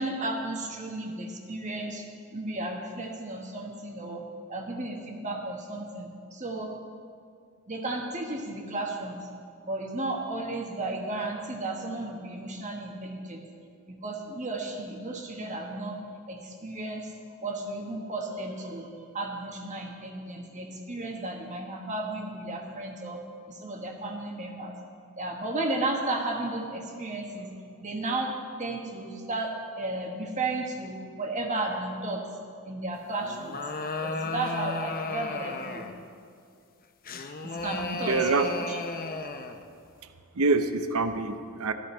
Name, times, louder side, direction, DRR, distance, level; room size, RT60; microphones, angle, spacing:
voice 1, 0.0-2.0 2.3-4.2 4.5-6.7 7.7-9.2 9.6-13.4 13.9-16.0 16.3-17.1 17.4-23.2 23.5-24.8 25.2-27.5 27.8-28.3 28.6-32.2 32.7-33.6 34.0-35.8 37.4-38.8, right 2 dB, 35° right, 1 dB, 1.2 m, -34 dB
sound 1, 33.2-36.0 37.1-39.7, left 3 dB, 40° left, 0.7 m, -34 dB
voice 2, 38.1-38.5 40.4-41.7, right 3 dB, 75° right, 9 dB, 0.7 m, -25 dB
13.5 x 13.0 x 4.4 m, 2.3 s
head